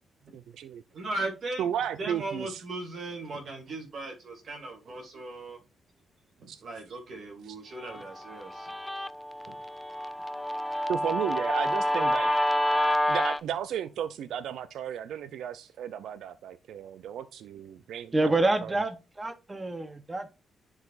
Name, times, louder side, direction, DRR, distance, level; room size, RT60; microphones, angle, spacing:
voice 1, 0.3-0.8 1.6-2.6 5.1-5.2 6.5-6.6 7.5-7.6 10.9-12.3 13.1-18.1 18.6-18.8, right 9 dB, 80° right, 0.4 m, -34 dB
voice 2, 0.9-1.7 2.0-5.6 6.4-8.7 9.5-9.6, right 2 dB, 50° right, 2.3 m, -37 dB
Guitar, 7.9-13.4, left 1 dB, 10° left, 0.4 m, -28 dB
voice 3, 18.1-20.3, right 2 dB, 20° right, 0.8 m, -27 dB
10.5 x 4.8 x 2.5 m
cardioid pair, 120°, 0 cm